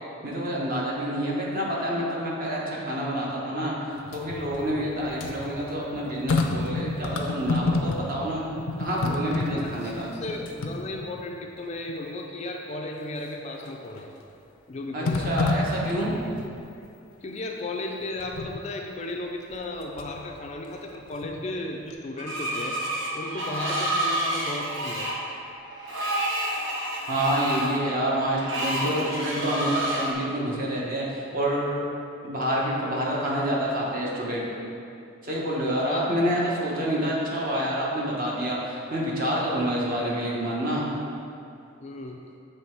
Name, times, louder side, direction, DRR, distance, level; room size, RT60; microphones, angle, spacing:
voice 1, 0.2-3.7 4.1-8.4 8.8-10.1 14.9-16.2 27.1-31.7 32.2-34.5 35.2-40.9, equal, 45° right, -4 dB, 1.1 m, -27 dB
sound 1, 4.0-8.3 8.5-11.3 11.9-12.0 13.6-14.1 15.0-16.6 18.2-18.6 19.5-20.2 20.6-21.6 21.9-22.0, left 3 dB, 90° left, 0.5 m, -30 dB
voice 2, 9.5-14.1 14.7-15.5 17.2-22.8 23.1-25.1 35.9-36.1 41.8-42.2, left 2 dB, 35° left, 1 dB, 0.4 m, -35 dB
Screech, 22.2-30.1, right 1 dB, 65° right, 0.8 m, -29 dB
6.8 x 3.2 x 4.5 m, 2.6 s
head